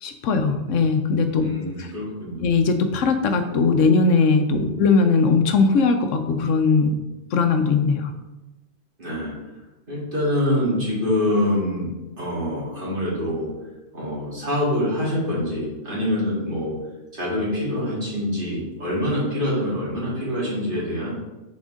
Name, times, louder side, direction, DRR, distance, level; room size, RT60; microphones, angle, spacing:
voice 1, 0.0-1.5 1.8-1.9 2.4-7.0 7.3-8.1, left 4 dB, 85° left, 7 dB, 1.0 m, -19 dB
voice 2, 1.4-2.4 4.6-4.8 9.0-9.6 9.9-11.9 12.2-13.5 13.9-16.8 17.1-21.1, left 1 dB, 45° right, -7 dB, 2.2 m, -25 dB
6.2 x 4.3 x 3.7 m, 1.1 s
omnidirectional pair, 1.3 m